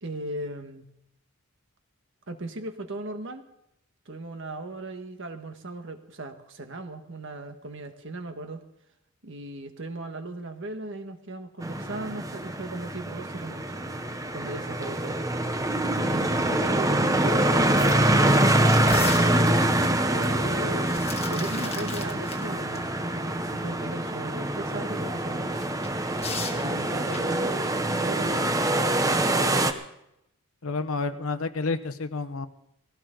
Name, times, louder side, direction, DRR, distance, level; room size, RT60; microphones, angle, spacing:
voice 1, 0.0-0.9 2.3-3.4 4.0-8.6 9.2-13.8 14.3-15.2 15.9-19.1 20.1-20.9 21.2-22.9 23.4-25.7 26.5-28.6 29.1-29.8, right 2 dB, 55° right, 6 dB, 1.6 m, -37 dB
sound 1, 11.6-29.7, right 1 dB, 15° right, 0.8 m, -25 dB
sound 2, 16.6-16.7 17.1-17.2 17.6-19.7 20.6-22.4 22.8-22.9 25.6-27.5, left 5 dB, 30° left, 1.5 m, -38 dB
voice 2, 30.6-32.5, left 3 dB, 70° left, 11 dB, 1.0 m, -29 dB
20.0 x 16.0 x 3.9 m, 0.81 s
head